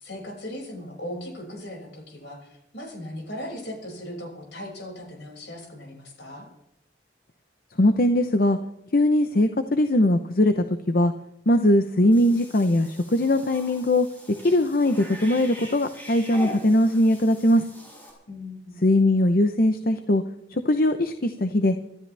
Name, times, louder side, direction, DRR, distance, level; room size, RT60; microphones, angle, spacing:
voice 1, 0.0-6.5 18.3-18.8, left 1 dB, 70° left, 0 dB, 6.1 m, -38 dB
voice 2, 7.8-8.6 8.9-11.1 11.5-14.1 14.4-17.7 18.8-20.2 20.5-21.8, left 1 dB, 50° left, 8 dB, 0.8 m, -20 dB
Cat / Bathtub (filling or washing), 12.1-18.1, equal, 10° left, 6.0 m, -42 dB
25.5 x 13.0 x 3.4 m, 0.84 s
head